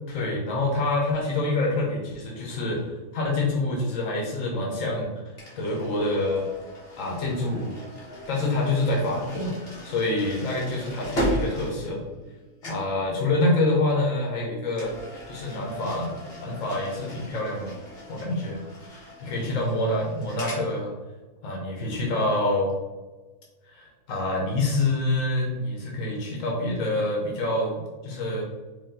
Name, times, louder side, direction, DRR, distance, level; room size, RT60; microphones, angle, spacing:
voice 1, 0.1-5.1 5.6-6.5 7.0-7.8 8.3-9.5 9.8-12.0 12.6-14.9 15.3-16.1 16.4-17.7 18.1-18.6 19.2-20.9 21.4-22.7 23.7-28.4, left 2 dB, 85° left, -1 dB, 1.2 m, -26 dB
sound 1, 5.4-12.4 12.6-12.9 14.7-20.7, equal, 50° left, 1.6 m, -36 dB
4.9 x 2.7 x 3.7 m, 1.3 s
omnidirectional pair, 1.3 m